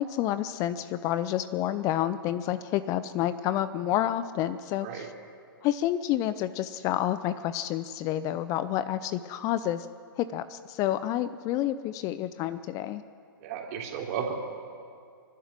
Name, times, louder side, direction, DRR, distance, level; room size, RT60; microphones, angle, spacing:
voice 1, 0.0-5.1 5.6-9.9 10.2-13.0, left 12 dB, 30° left, 14 dB, 0.6 m, -29 dB
voice 2, 13.4-14.4, right 7 dB, 40° right, 1 dB, 3.4 m, -33 dB
26.0 x 12.0 x 9.6 m, 2.3 s
figure-of-eight pair, 120°, 12 cm